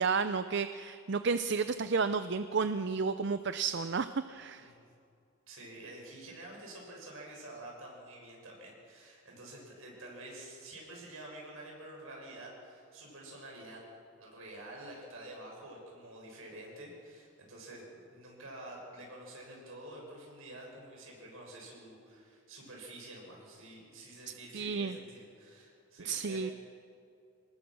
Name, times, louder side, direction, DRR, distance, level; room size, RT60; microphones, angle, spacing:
voice 1, 0.0-4.6 24.5-25.0 26.1-26.5, right 5 dB, 50° right, 11 dB, 0.5 m, -32 dB
voice 2, 4.6-4.9 5.5-13.8 14.2-26.4, right 1 dB, 75° right, -1 dB, 6.9 m, -49 dB
25.5 x 19.5 x 6.2 m, 2.5 s
head